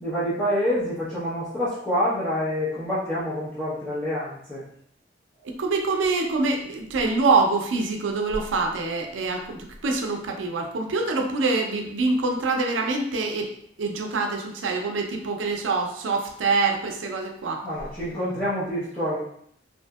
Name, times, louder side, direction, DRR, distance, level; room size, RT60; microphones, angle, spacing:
voice 1, 0.0-4.6 17.6-19.2, equal, 10° left, -13 dB, 0.7 m, -27 dB
voice 2, 5.5-13.5 13.8-17.6, right 3 dB, 85° right, 3 dB, 0.5 m, -25 dB
2.7 x 2.6 x 2.2 m, 0.68 s
head